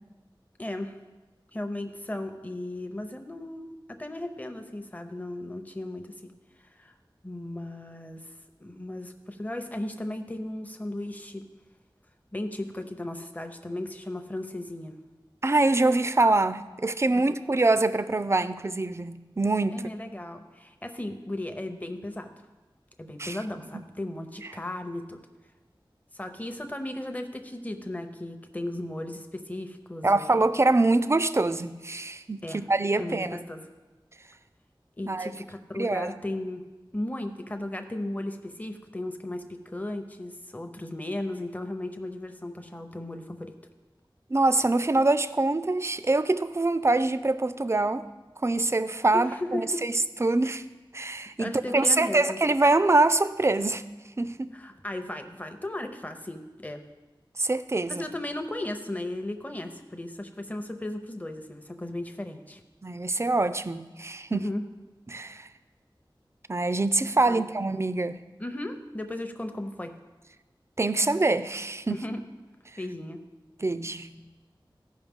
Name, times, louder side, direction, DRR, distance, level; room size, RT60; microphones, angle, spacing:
voice 1, 0.6-0.9 1.5-6.3 6.8-6.9 7.2-8.3 8.6-11.4 12.3-15.0 17.1-17.2 19.7-22.3 23.0-25.2 26.1-30.4 32.4-32.6 33.0-33.6 35.0-36.6 36.9-43.6 49.1-49.8 51.4-52.4 54.5-56.8 57.9-62.6 64.3-64.6 67.3-67.4 68.4-70.0 71.9-72.2 72.8-73.2, left 1 dB, 15° left, 6 dB, 0.7 m, -36 dB
voice 2, 15.4-19.8 23.2-23.4 30.0-33.4 35.1-35.3 35.8-36.1 44.3-48.0 48.4-49.9 50.2-50.6 50.9-53.8 54.2-54.5 57.4-58.0 62.8-64.4 65.1-65.5 66.5-68.2 70.8-72.0 73.6-74.2, right 2 dB, 30° right, 13 dB, 0.4 m, -24 dB
14.5 x 5.3 x 3.6 m, 1.2 s
wide cardioid pair, 55°, 9 cm